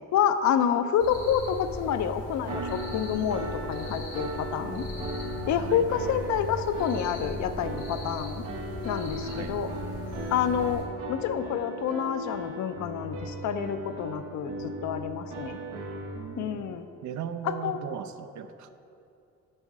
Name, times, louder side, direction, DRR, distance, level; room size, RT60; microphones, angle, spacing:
voice 1, 0.1-4.9 5.5-8.4 8.8-9.7 10.3-15.6 16.4-16.9 17.4-17.8, left 8 dB, 70° left, 9 dB, 0.5 m, -28 dB
sound 1, 1.0-10.8, left 1 dB, 85° left, 1.9 m, -39 dB
sound 2, 2.5-16.2, right 1 dB, 85° right, 1.1 m, -37 dB
voice 2, 9.2-9.6 16.1-18.7, right 8 dB, 70° right, 10 dB, 0.5 m, -38 dB
7.6 x 5.3 x 4.7 m, 2.6 s
cardioid pair, 90°, 30 cm